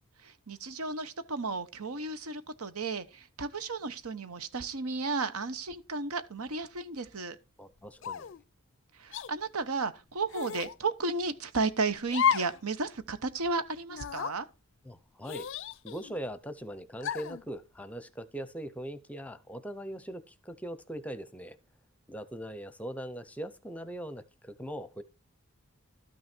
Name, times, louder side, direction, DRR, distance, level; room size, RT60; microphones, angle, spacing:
voice 1, 0.2-7.4 9.0-14.5, right 3 dB, 90° right, 1.0 m, -33 dB
voice 2, 7.6-8.3 14.8-15.5 15.8-21.6 22.1-25.0, right 1 dB, 5° left, 0.6 m, -41 dB
sound 1, 8.0-8.4 9.1-9.3 10.3-10.8 12.1-12.6 13.0-13.1 13.9-14.4 15.3-16.2 17.0-17.4, left 8 dB, 60° left, 0.4 m, -32 dB
12.5 x 6.2 x 4.4 m
head